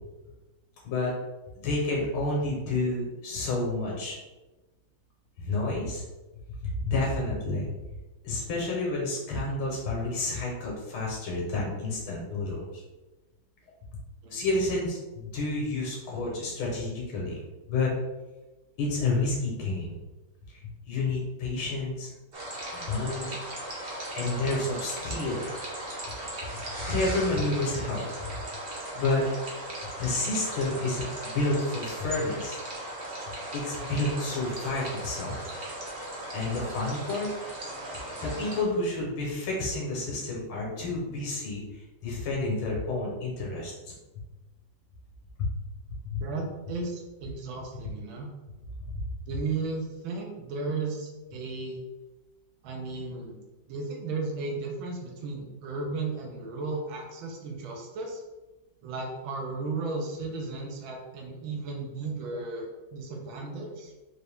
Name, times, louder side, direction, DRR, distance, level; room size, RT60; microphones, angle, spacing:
voice 1, 1.6-4.2 5.4-6.0 6.6-7.7 8.2-12.7 14.3-17.4 17.7-17.9 18.8-20.0 20.5-22.1 22.7-23.3 24.2-25.4 26.9-28.0 29.0-29.2 30.0-32.6 33.5-35.5 36.3-37.3 37.9-43.7 45.4-45.5 46.1-46.2 49.0-49.1, left 2 dB, 90° left, -3 dB, 2.0 m, -30 dB
sound 1, 22.3-38.6, right 1 dB, 40° right, 0.9 m, -38 dB
voice 2, 46.2-48.3 49.3-51.8 52.6-53.4 53.7-58.2 58.8-63.9, right 3 dB, 75° right, 0 dB, 1.5 m, -35 dB
4.5 x 2.7 x 3.4 m, 1.1 s
omnidirectional pair, 2.2 m